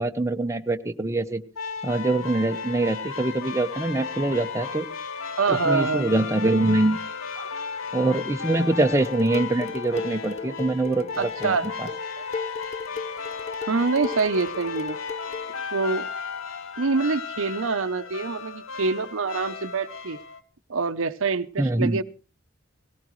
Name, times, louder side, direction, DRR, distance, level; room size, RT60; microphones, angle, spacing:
voice 1, 0.0-1.4 1.8-4.9 5.5-7.0 7.9-11.9 21.6-22.0, right 2 dB, 15° right, 6 dB, 0.8 m, -24 dB
sound 1, 1.6-20.4, left 5 dB, 80° left, 1.0 m, -35 dB
voice 2, 5.4-6.1 7.4-7.5 11.2-12.2 13.7-15.0 15.7-16.1 16.8-20.2 20.7-22.0, right 4 dB, 70° right, 13 dB, 0.7 m, -26 dB
Dishes pots and pans, 8.9-15.5, left 5 dB, 35° left, 0.7 m, -36 dB
18.0 x 17.5 x 3.1 m, 0.35 s
head